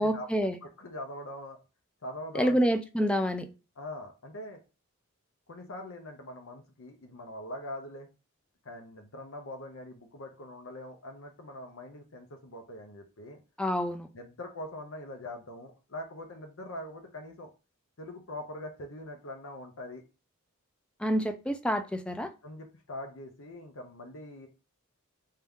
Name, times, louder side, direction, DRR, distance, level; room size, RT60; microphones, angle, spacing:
voice 1, 0.0-0.6 2.3-3.5 13.6-14.1 21.0-22.3, equal, 5° left, 0.3 m, -27 dB
voice 2, 0.6-1.6 2.0-2.6 3.0-3.1 3.8-4.6 5.5-8.1 8.6-13.4 14.1-17.5 18.0-20.0 22.4-24.5, left 1 dB, 65° left, 0.7 m, -42 dB
3.5 x 2.8 x 3.5 m
head